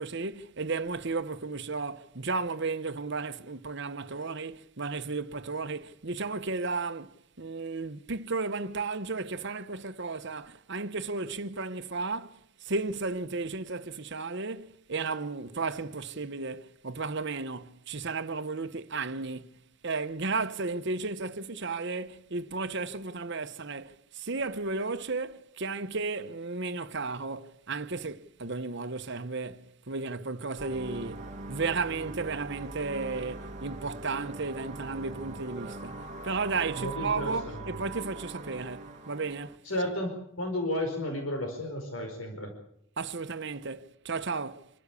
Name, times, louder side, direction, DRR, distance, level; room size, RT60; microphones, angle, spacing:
voice 1, 0.0-19.6 19.8-39.6 43.0-44.7, right 3 dB, 60° right, 1.2 m, -34 dB
sound 1, 30.6-39.6, right 3 dB, 35° right, 1.6 m, -41 dB
voice 2, 36.7-37.6 39.6-40.1 40.4-42.5, left 1 dB, 85° left, 4.9 m, -32 dB
27.5 x 13.5 x 8.5 m
head